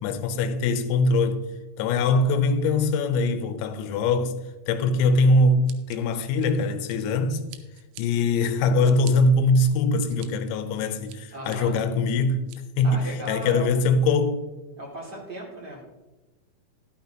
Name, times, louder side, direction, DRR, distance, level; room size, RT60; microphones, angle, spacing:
voice 1, 0.0-1.5 1.8-4.3 4.7-7.4 8.0-12.5 12.8-14.4, left 2 dB, 85° left, 3.5 m, -22 dB
Scissors, 5.7-7.2 7.5-8.0 8.5-9.1 9.7-10.3 10.7-11.6 12.1-12.6, right 12 dB, 90° right, 3.6 m, -46 dB
voice 2, 11.3-11.8 12.8-14.1 14.8-15.8, right 1 dB, 35° right, 1.7 m, -37 dB
11.5 x 11.5 x 2.9 m
omnidirectional pair, 5.9 m